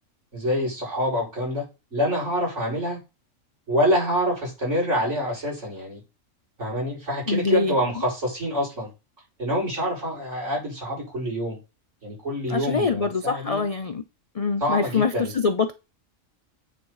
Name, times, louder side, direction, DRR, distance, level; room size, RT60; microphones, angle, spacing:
voice 1, 0.3-1.6 1.9-3.0 3.7-6.0 6.6-8.9 9.4-11.6 12.0-13.6 14.6-15.3, equal, 60° right, 6.1 m, -26 dB
voice 2, 7.3-8.0 12.5-14.0 14.3-15.7, left 4 dB, 50° left, 0.4 m, -24 dB
9.0 x 4.2 x 4.8 m
omnidirectional pair, 1.4 m